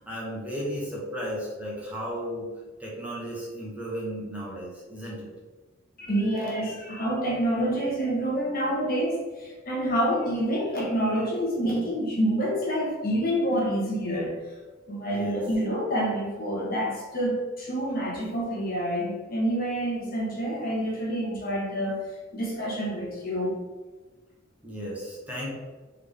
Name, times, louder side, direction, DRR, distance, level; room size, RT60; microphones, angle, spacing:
voice 1, 0.0-2.5 2.8-5.3 15.1-15.4 24.6-25.5, equal, 10° right, -6 dB, 1.1 m, -34 dB
voice 2, 6.0-14.4 14.9-22.0 22.3-23.6, equal, 50° left, -4 dB, 1.3 m, -27 dB
3.7 x 3.6 x 3.5 m, 1.3 s
head